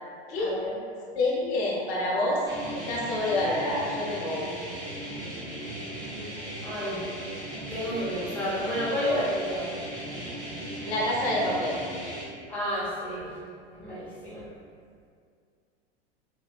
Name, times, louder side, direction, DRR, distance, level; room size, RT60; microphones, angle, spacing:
voice 1, 0.4-0.7 6.6-7.1 7.7-9.7 12.5-13.3 13.8-14.4, equal, 5° left, -12 dB, 0.9 m, -30 dB
voice 2, 1.1-2.4 2.7-4.5 10.8-11.8, left 1 dB, 70° left, -5 dB, 0.8 m, -27 dB
sound 1, 2.5-12.2, right 1 dB, 10° right, 0.5 m, -37 dB
3.2 x 2.1 x 2.4 m, 2.2 s
supercardioid pair, 140°, 33 cm